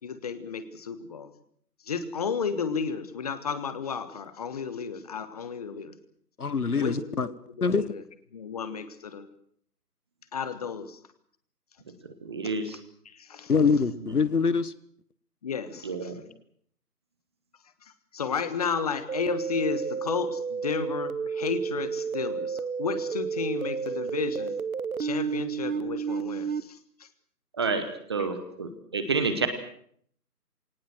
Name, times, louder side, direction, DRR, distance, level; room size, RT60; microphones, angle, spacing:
voice 1, 0.0-1.3 1.8-6.0 6.8-8.0 8.3-9.3 10.3-11.0 12.4-12.5 13.0-13.5 15.4-16.1 18.1-24.6 25.0-27.1 28.2-28.3, left 6 dB, 25° left, 13 dB, 1.4 m, -33 dB
voice 2, 6.4-7.3 7.6-7.9 13.5-14.7, left 5 dB, 65° left, 16 dB, 1.6 m, -24 dB
voice 3, 12.2-12.8 15.8-16.2 27.6-29.5, right 4 dB, 15° right, 9 dB, 1.1 m, -29 dB
sound 1, 19.1-26.6, right 6 dB, 60° right, 1.1 m, -31 dB
22.0 x 19.0 x 7.9 m, 0.63 s
figure-of-eight pair, 155°, 48 cm